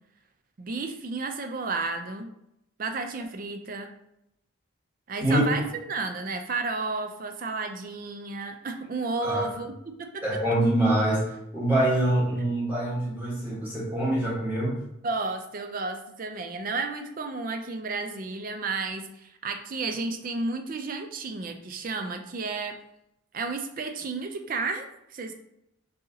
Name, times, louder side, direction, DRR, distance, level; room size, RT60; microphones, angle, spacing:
voice 1, 0.6-2.3 2.8-3.9 5.1-5.6 5.9-9.7 10.0-10.2 15.0-22.8 23.3-25.3, right 3 dB, 40° right, 6 dB, 0.4 m, -32 dB
voice 2, 10.2-11.2 11.5-14.8, right 1 dB, 10° right, -7 dB, 1.5 m, -25 dB
3.9 x 2.7 x 3.8 m, 0.82 s
head